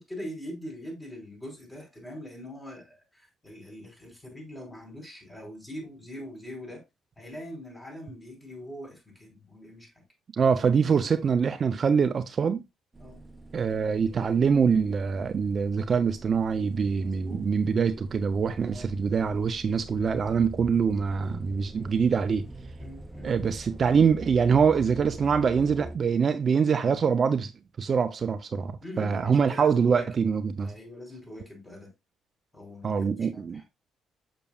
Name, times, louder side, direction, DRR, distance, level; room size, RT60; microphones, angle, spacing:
voice 1, 0.0-6.8 7.2-10.0 13.0-13.2 16.9-17.4 18.7-18.9 22.8-23.3 28.8-30.1 30.6-31.9 32.5-33.6, equal, 15° left, 4.7 m, -42 dB
voice 2, 10.3-12.6 13.5-22.5 23.2-27.5 27.8-30.7 32.8-33.6, right 6 dB, 50° right, 0.5 m, -24 dB
sound 1, 12.9-26.0, right 1 dB, 20° right, 0.9 m, -44 dB
6.9 x 6.0 x 2.4 m
supercardioid pair, 60°, 0 cm